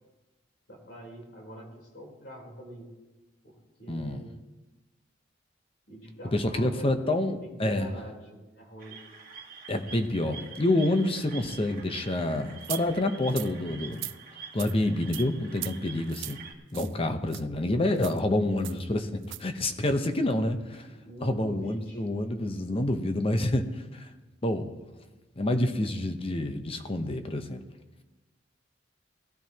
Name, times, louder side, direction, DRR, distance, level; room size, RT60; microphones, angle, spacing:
voice 1, 0.7-2.9 3.4-4.3 5.9-9.0 20.9-22.0, equal, 60° left, -1 dB, 3.7 m, -45 dB
voice 2, 3.9-4.2 6.3-7.9 9.7-14.0 14.5-16.4 16.7-20.9 21.2-24.1 24.4-24.7 25.4-27.6, left 1 dB, 30° left, 7 dB, 0.8 m, -28 dB
sound 1, 8.8-16.5, right 6 dB, 50° right, 1.4 m, -46 dB
sound 2, 12.6-12.8 13.3-13.5 13.9-14.2 14.6-14.7 15.1-15.2 15.6-15.7 16.1-16.4 16.7-16.9 17.3-17.4 18.0-18.2 18.6-18.8 19.2-19.4, right 17 dB, 85° right, 0.4 m, -38 dB
19.0 x 12.0 x 2.9 m, 1.1 s
head